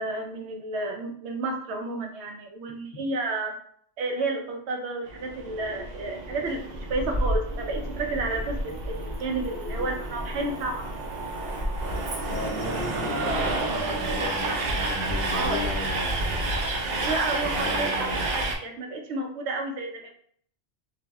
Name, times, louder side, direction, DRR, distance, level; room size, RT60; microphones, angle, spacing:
voice 1, 0.0-3.5 4.0-6.6 6.9-10.8 14.2-14.6 15.3-15.7 17.0-20.1, right 2 dB, 80° right, 2 dB, 0.9 m, -31 dB
Train, 5.1-18.6, right 2 dB, 55° right, 0.5 m, -29 dB
voice 2, 12.3-16.6 17.3-18.3, left 2 dB, 70° left, 2 dB, 0.8 m, -36 dB
3.3 x 2.1 x 2.3 m, 0.62 s
omnidirectional pair, 1.1 m